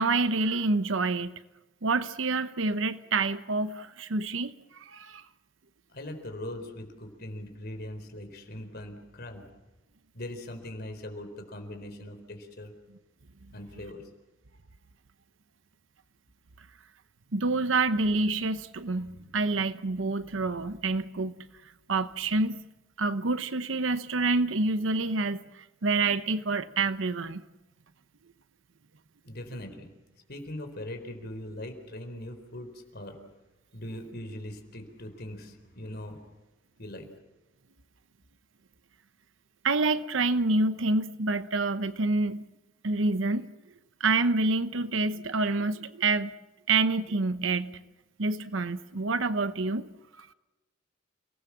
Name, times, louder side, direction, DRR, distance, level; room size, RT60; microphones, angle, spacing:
voice 1, 0.0-1.3 1.8-5.2 17.3-21.3 21.9-22.6 23.0-27.4 39.6-42.4 42.8-43.5 44.0-46.3 46.7-47.8 48.2-49.9 50.2-50.3, right 3 dB, 80° right, 0.9 m, -27 dB
voice 2, 5.9-9.5 10.1-12.7 13.5-14.0 29.2-29.9 30.3-33.2 33.7-36.2 36.8-37.1, left 1 dB, 55° left, 4.3 m, -40 dB
29.5 x 19.0 x 7.4 m
head